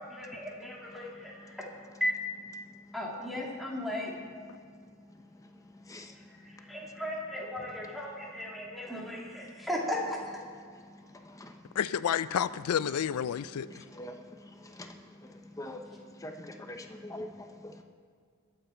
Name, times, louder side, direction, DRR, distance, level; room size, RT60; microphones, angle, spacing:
voice 1, 0.0-1.7 2.0-2.1 2.9-4.1 6.1-10.2, left 1 dB, ahead, -4 dB, 2.3 m, -36 dB
voice 2, 5.1-6.8 10.9-11.7 13.7-17.8, left 1 dB, 15° left, 4 dB, 0.7 m, -46 dB
voice 3, 11.8-13.9, left 8 dB, 80° left, 16 dB, 0.4 m, -30 dB
22.0 x 8.1 x 4.4 m, 2.1 s
head